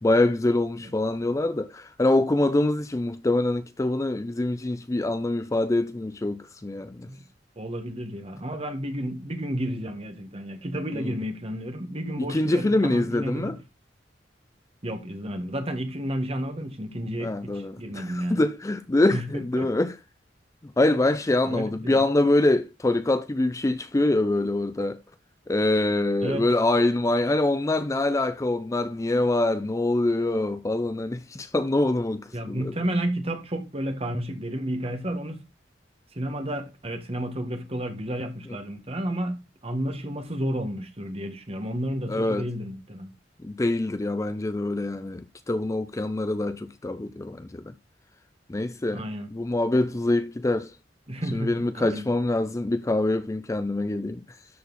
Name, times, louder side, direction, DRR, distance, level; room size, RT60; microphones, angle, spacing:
voice 1, 0.0-7.1 10.9-11.2 12.2-13.6 17.2-19.9 20.6-25.0 25.5-32.7 42.1-42.5 43.4-47.7 48.5-49.0 49.3-50.7 51.3-54.2, left 2 dB, 15° left, 0.4 m, -25 dB
voice 2, 7.6-13.6 14.8-18.4 19.1-19.7 21.4-22.0 26.2-26.4 32.3-35.4 36.1-43.1 48.9-49.3 51.1-52.1, equal, 35° right, 1.6 m, -31 dB
13.0 x 4.3 x 4.1 m
head